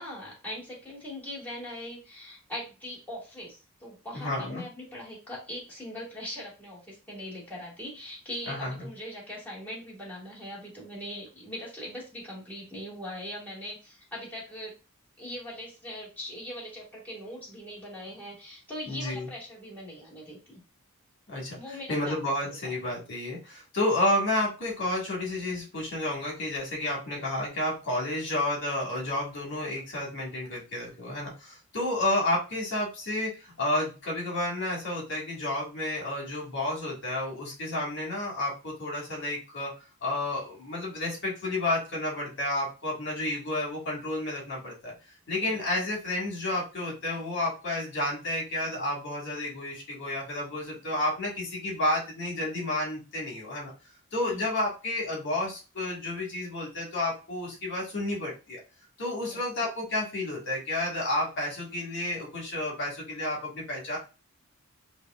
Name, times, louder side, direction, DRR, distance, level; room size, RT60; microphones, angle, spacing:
voice 1, 0.0-14.7 15.2-20.6 21.6-22.1 22.4-22.7 45.4-45.6 54.3-54.4 59.2-59.4, equal, 10° left, -7 dB, 2.1 m, -41 dB
voice 2, 4.1-4.6 8.5-8.9 18.9-19.3 21.3-21.6 21.9-39.7 40.0-44.9 45.3-53.7 54.1-58.6 59.0-64.0, left 1 dB, 55° left, -2 dB, 1.8 m, -31 dB
5.1 x 2.7 x 2.4 m, 0.31 s
head